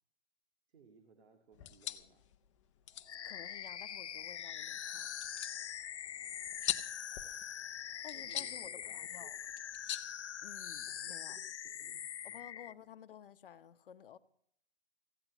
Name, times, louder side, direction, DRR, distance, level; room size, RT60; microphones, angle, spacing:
voice 1, 0.7-2.3 6.0-7.0 8.1-9.3 10.9-12.9, right 4 dB, 70° right, 2.0 m, -63 dB
sound 1, 1.5-11.0, left 12 dB, 30° left, 0.6 m, -45 dB
sound 2, 2.8-10.0, equal, 90° right, 7.6 m, -71 dB
sound 3, 3.1-12.7, left 9 dB, 80° left, 0.6 m, -43 dB
voice 2, 3.2-5.1 8.0-9.4 10.4-11.4 12.2-14.2, left 9 dB, 55° left, 0.9 m, -53 dB
15.5 x 9.5 x 6.0 m
hypercardioid pair, 145°, 33 cm